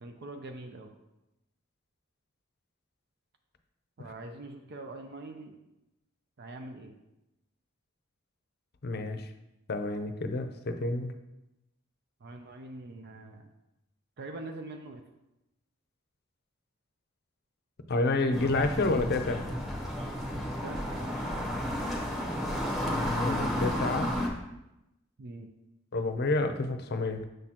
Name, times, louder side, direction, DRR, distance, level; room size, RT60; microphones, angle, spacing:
voice 1, 0.0-0.9 4.0-5.6 6.4-7.0 12.2-13.5 14.2-15.0 20.6-21.3 25.2-25.5, right 2 dB, 55° right, 5 dB, 0.5 m, -43 dB
voice 2, 8.8-9.2 9.7-11.1 17.9-19.5 22.9-24.1 25.9-27.3, left 2 dB, 50° left, 8 dB, 0.6 m, -29 dB
sound 1, 18.3-24.3, equal, ahead, 1.1 m, -32 dB
6.5 x 6.3 x 2.9 m, 0.93 s
head